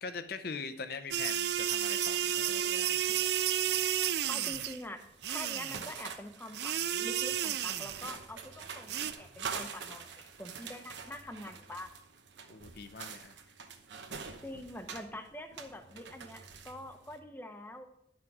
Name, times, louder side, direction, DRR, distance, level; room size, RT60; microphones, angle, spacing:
voice 1, 0.0-2.9 12.5-13.3, left 4 dB, 55° left, 9 dB, 0.7 m, -42 dB
sound 1, 1.1-4.8 5.2-6.0 6.5-8.1 8.9-9.1, right 10 dB, 60° right, 0.4 m, -32 dB
sound 2, 2.3-3.3 3.5-17.2, right 5 dB, 80° right, 1.0 m, -46 dB
voice 2, 4.3-11.9 14.4-17.9, left 1 dB, 10° left, 7 dB, 0.8 m, -45 dB
10.5 x 6.2 x 4.7 m, 0.77 s
head